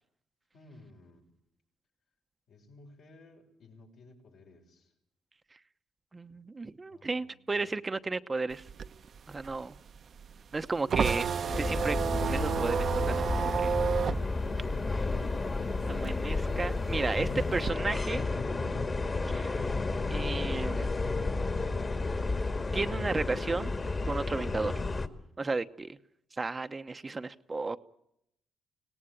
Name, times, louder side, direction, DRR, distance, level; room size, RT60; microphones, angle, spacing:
voice 1, 0.5-1.3 2.5-4.9 6.9-7.7 14.4-15.4, left 3 dB, 70° left, 6.6 m, -55 dB
voice 2, 6.1-8.6 9.3-9.8 10.5-11.3 11.6-12.0 12.2-13.7 15.9-18.2 19.3-19.7 20.1-20.9 22.7-23.7 24.1-24.9 25.4-26.0 26.4-27.8, right 3 dB, 25° right, 0.9 m, -33 dB
sound 1, 8.5-15.6 15.9-17.7, right 7 dB, 55° right, 0.9 m, -31 dB
sound 2, 11.5-25.1, left 3 dB, 30° left, 2.1 m, -32 dB
25.0 x 18.5 x 9.9 m
cardioid pair, 90°, 0 cm